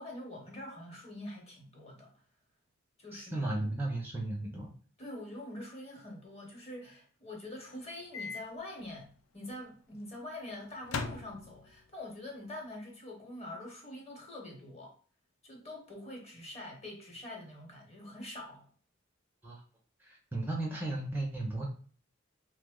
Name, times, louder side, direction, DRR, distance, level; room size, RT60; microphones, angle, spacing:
voice 1, 0.0-2.1 3.0-3.5 5.0-14.9 15.4-18.7, left 1 dB, 30° left, 0.9 m, -45 dB
voice 2, 3.1-4.7 19.4-19.6 20.0-21.7, right 2 dB, 10° right, 0.4 m, -35 dB
Microwave oven, 8.1-8.4 8.8-8.9 10.8-11.9, left 4 dB, 80° left, 0.4 m, -39 dB
3.1 x 2.0 x 3.5 m
head